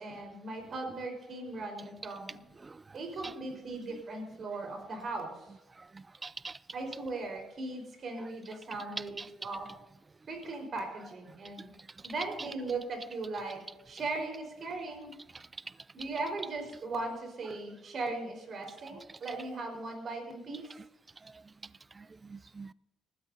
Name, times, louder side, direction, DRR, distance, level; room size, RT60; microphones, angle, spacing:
voice 1, 0.0-2.3 2.9-5.3 6.7-9.7 10.3-11.7 12.0-15.2 15.9-20.7, right 3 dB, 55° right, 3 dB, 4.6 m, -38 dB
voice 2, 5.9-6.6 8.2-8.3 9.2-9.3 15.3-15.4 20.5-20.6 22.0-22.7, right 4 dB, 25° right, 19 dB, 0.3 m, -45 dB
19.5 x 12.5 x 2.8 m, 0.99 s
cardioid pair, 90°, 0 cm